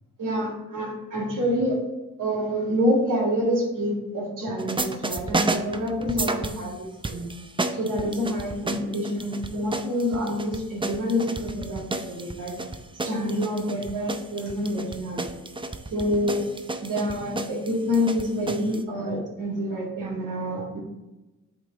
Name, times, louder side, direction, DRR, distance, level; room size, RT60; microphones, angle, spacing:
voice 1, 0.2-1.8 2.2-7.3 7.7-12.5 13.0-15.3 15.9-16.4 16.8-20.8, equal, 75° right, -3 dB, 1.9 m, -27 dB
sound 1, 4.6-6.7 7.0-18.8, right 2 dB, 15° right, 0.5 m, -32 dB
7.9 x 3.3 x 4.0 m, 1.0 s
cardioid pair, 55°, 32 cm